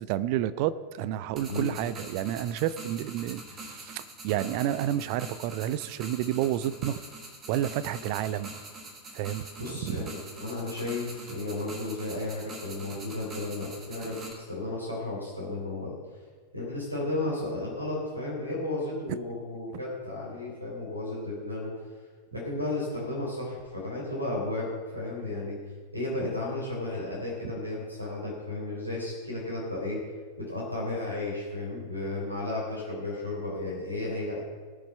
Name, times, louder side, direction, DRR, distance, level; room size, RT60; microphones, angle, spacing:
voice 1, 0.0-7.0 7.5-8.5 9.1-9.5 9.8-10.0 19.7-19.8 27.4-27.5, right 12 dB, 45° right, 16 dB, 0.5 m, -30 dB
sound 1, 1.4-14.3, right 2 dB, 25° right, 2.7 m, -44 dB
voice 2, 9.6-16.0 16.5-21.7 22.3-25.6 25.9-30.0 30.4-34.4, left 2 dB, 85° right, -4 dB, 3.8 m, -33 dB
18.5 x 7.3 x 5.5 m, 1.5 s
figure-of-eight pair, 90°, 0 cm